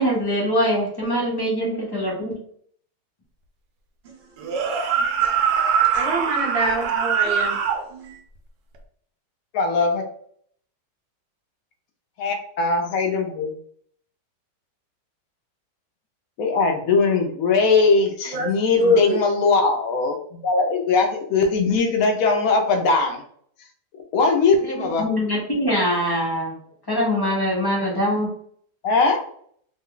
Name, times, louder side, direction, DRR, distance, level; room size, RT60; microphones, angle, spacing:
voice 1, 0.0-2.4 24.6-26.6 26.9-28.3, equal, 20° left, -4 dB, 0.6 m, -23 dB
voice 2, 4.4-4.8 5.2-7.6 8.0-8.2 18.3-18.5 18.8-19.2, equal, 45° right, -1 dB, 0.9 m, -25 dB
sound 1, 4.4-7.8, right 7 dB, 80° right, 1.2 m, -22 dB
voice 3, 9.5-10.0 12.2-13.5 16.4-20.2 20.4-23.2 24.1-25.0 28.8-29.2, left 4 dB, 70° left, 3 dB, 0.8 m, -20 dB
3.1 x 2.1 x 3.7 m, 0.62 s
omnidirectional pair, 1.8 m